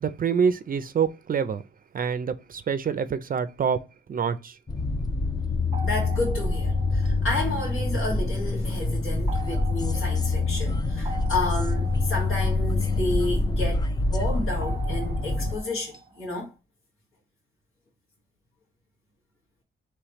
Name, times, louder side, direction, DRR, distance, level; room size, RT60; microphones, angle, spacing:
voice 1, 0.0-1.6 1.9-3.8 4.1-4.6, right 6 dB, 45° right, 0.4 m, -26 dB
sound 1, 4.7-15.6, left 3 dB, 20° left, 0.4 m, -26 dB
sound 2, 5.7-8.5 9.3-13.8 14.6-16.4, right 4 dB, 20° right, 0.9 m, -43 dB
voice 2, 5.8-16.5, left 2 dB, 80° left, 1.8 m, -31 dB
4.9 x 3.2 x 3.0 m
wide cardioid pair, 145°, 21 cm